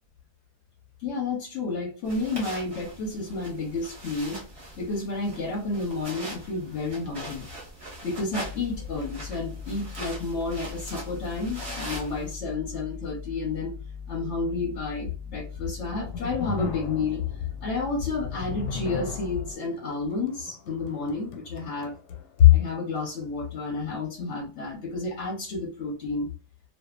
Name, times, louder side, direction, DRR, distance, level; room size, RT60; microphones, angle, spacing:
voice 1, 1.0-4.4 4.8-7.5 8.0-13.7 14.1-22.0 22.4-26.3, left 6 dB, 60° left, 0 dB, 0.8 m, -29 dB
sound 1, 2.0-12.3, right 1 dB, 25° right, 0.8 m, -41 dB
sound 2, 8.4-19.5, left 6 dB, 70° right, 0.3 m, -40 dB
sound 3, 15.6-22.8, left 5 dB, 90° left, 1.2 m, -39 dB
2.6 x 2.4 x 2.3 m, 0.34 s
omnidirectional pair, 1.8 m